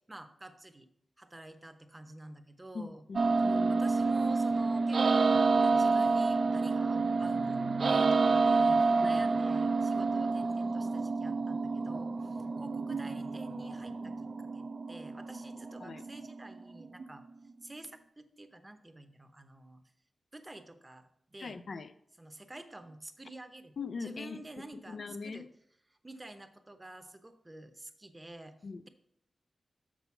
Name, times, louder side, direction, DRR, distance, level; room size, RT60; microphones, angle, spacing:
voice 1, 0.1-0.9 1.2-3.0 3.7-14.2 14.5-17.2 17.6-19.8 20.3-21.6 22.2-25.5 26.0-28.6, right 1 dB, 20° right, 8 dB, 0.7 m, -49 dB
voice 2, 2.7-3.8 9.0-9.2 15.8-16.0 21.4-21.9 23.8-24.5 24.9-25.5 28.6-28.9, left 4 dB, 65° left, 11 dB, 0.4 m, -41 dB
sound 1, 3.1-17.1, right 4 dB, 55° right, 0.3 m, -28 dB
6.7 x 6.1 x 5.6 m, 0.73 s
wide cardioid pair, 100°, 0 cm